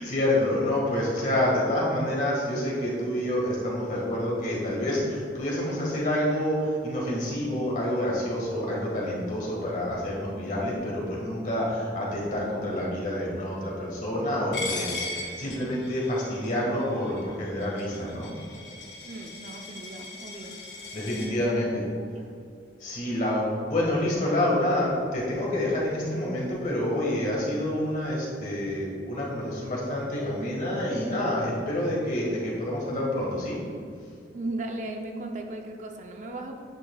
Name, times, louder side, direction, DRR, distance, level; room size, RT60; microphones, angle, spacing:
voice 1, 0.0-18.3 20.9-21.8 22.8-33.6, left 1 dB, 45° left, -4 dB, 1.6 m, -28 dB
Coin (dropping), 14.5-21.3, left 3 dB, 85° left, 1.6 m, -38 dB
voice 2, 19.0-20.6 21.2-21.5 22.0-22.4 34.3-36.6, right 2 dB, 40° right, 3 dB, 0.5 m, -37 dB
9.6 x 5.9 x 2.3 m, 2.3 s
head